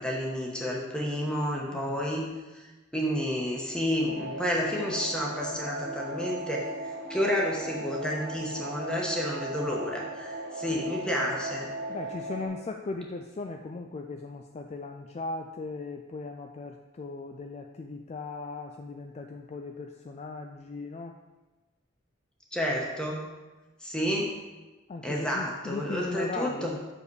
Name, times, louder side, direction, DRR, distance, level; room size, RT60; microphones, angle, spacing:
voice 1, 0.0-2.7 2.9-6.6 7.1-11.7 22.5-23.3 23.8-24.3 25.0-26.7, equal, 5° left, -2 dB, 1.1 m, -30 dB
voice 2, 1.7-2.1 11.9-21.2 24.9-26.8, left 3 dB, 35° left, 4 dB, 0.3 m, -38 dB
sound 1, 4.1-12.5, right 1 dB, 50° right, 1.0 m, -37 dB
6.6 x 5.1 x 4.7 m, 1.1 s
head